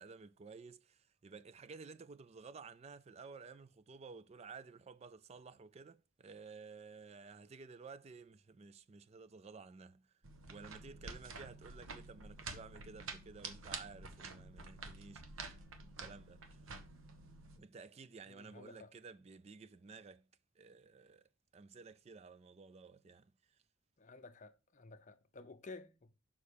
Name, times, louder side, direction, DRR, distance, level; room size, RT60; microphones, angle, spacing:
voice 1, 0.0-10.1 10.5-15.2 16.0-16.6 17.6-20.2 20.6-23.6, right 4 dB, 30° right, 0.3 m, -54 dB
sound 1, 10.2-17.6, right 4 dB, 75° right, 1.1 m, -49 dB
voice 2, 18.3-18.9 24.0-26.1, left 3 dB, 35° left, 0.6 m, -53 dB
6.8 x 5.5 x 5.0 m
head